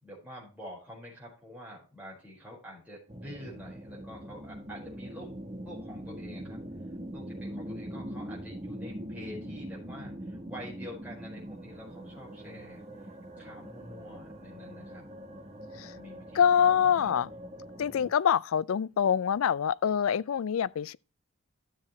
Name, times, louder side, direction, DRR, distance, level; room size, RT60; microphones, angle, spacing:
voice 1, 0.0-5.3 5.6-6.6 7.1-12.8 13.4-15.0 15.9-17.1, equal, 5° right, 4.9 m, -47 dB
sound 1, 3.1-18.1, equal, 30° right, 1.1 m, -42 dB
voice 2, 16.4-17.3 17.8-21.0, left 8 dB, 80° left, 0.4 m, -25 dB
13.0 x 7.3 x 3.2 m
head